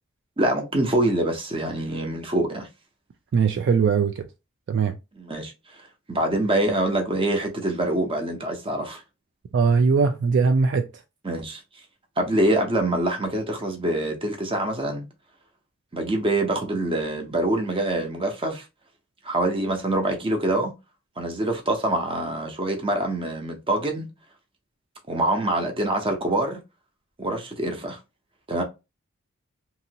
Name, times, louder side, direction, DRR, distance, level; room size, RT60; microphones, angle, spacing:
voice 1, 0.4-2.7 5.2-5.5 5.8-9.0 11.2-11.6 12.2-15.1 15.9-18.6 19.2-20.7 21.2-24.1 25.1-26.6 27.2-28.0 28.5-28.6, right 1 dB, 25° right, 0.7 m, -25 dB
voice 2, 3.3-4.3 4.7-5.0 9.5-10.9, right 5 dB, 55° right, 0.3 m, -20 dB
2.9 x 2.7 x 2.7 m
head